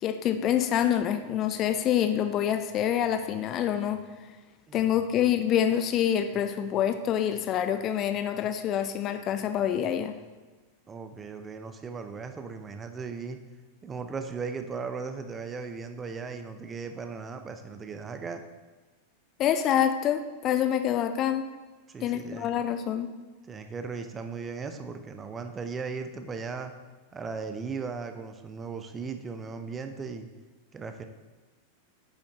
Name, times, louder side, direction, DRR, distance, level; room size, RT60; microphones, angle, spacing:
voice 1, 0.0-4.0 4.7-10.2 19.4-21.5 22.0-23.1, left 10 dB, 35° left, 9 dB, 0.5 m, -26 dB
voice 2, 10.9-13.4 13.8-18.4 21.9-22.5 23.5-26.7 27.1-30.3 30.7-31.0, right 5 dB, 20° right, 7 dB, 0.7 m, -37 dB
9.4 x 7.0 x 3.0 m, 1.3 s
figure-of-eight pair, 90°, 0 cm